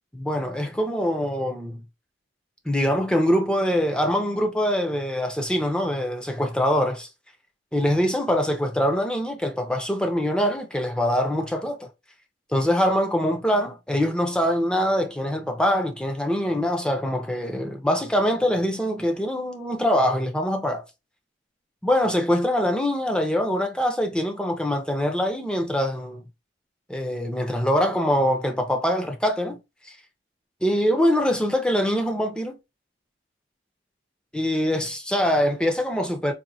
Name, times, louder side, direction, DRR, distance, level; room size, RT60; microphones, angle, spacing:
voice 1, 0.1-1.8 2.7-7.1 7.7-11.9 12.5-20.8 21.8-26.2 26.9-29.6 29.8-30.0 30.6-32.6 34.3-36.3, equal, 5° left, 0.6 m, -23 dB
4.2 x 2.7 x 2.7 m
head